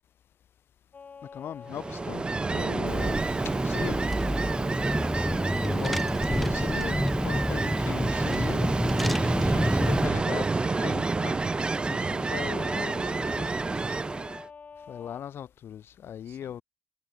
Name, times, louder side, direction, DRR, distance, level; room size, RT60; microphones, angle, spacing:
sound 1, 0.9-8.4 12.5-15.2, left 5 dB, 35° left, 3.3 m, -46 dB
voice 1, 1.3-3.2 3.6-4.1 5.6-13.6 14.9-16.6, left 9 dB, 65° left, 3.1 m, -39 dB
Ocean, 1.7-14.5, right 3 dB, 25° right, 2.0 m, -29 dB
Car / Engine, 2.9-10.1, equal, ahead, 0.6 m, -29 dB
voice 2, 11.8-13.2 13.5-14.1 16.3-16.6, right 11 dB, 85° right, 6.9 m, -53 dB
cardioid pair, 125°, 4 cm